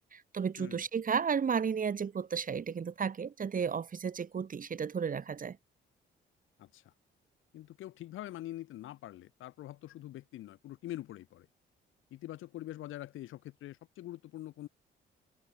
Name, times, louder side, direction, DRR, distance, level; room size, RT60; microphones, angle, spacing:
voice 1, 0.1-5.6, right 6 dB, 45° right, 3.2 m, -33 dB
voice 2, 6.6-6.9 7.5-11.5 12.1-14.7, left 14 dB, 85° left, 5.9 m, -44 dB
cardioid pair, 90°, 20 cm